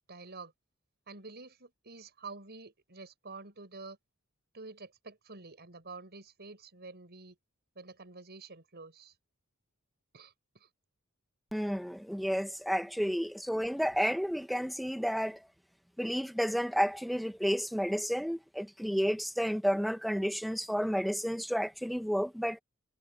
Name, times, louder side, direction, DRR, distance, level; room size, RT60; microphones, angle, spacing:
voice 1, 0.1-0.5 1.1-4.0 4.5-7.4 7.7-9.2 10.1-10.7 13.0-13.2, right 3 dB, 50° right, 6.2 m, -48 dB
voice 2, 11.5-15.4 16.0-22.6, equal, ahead, 1.4 m, -31 dB
head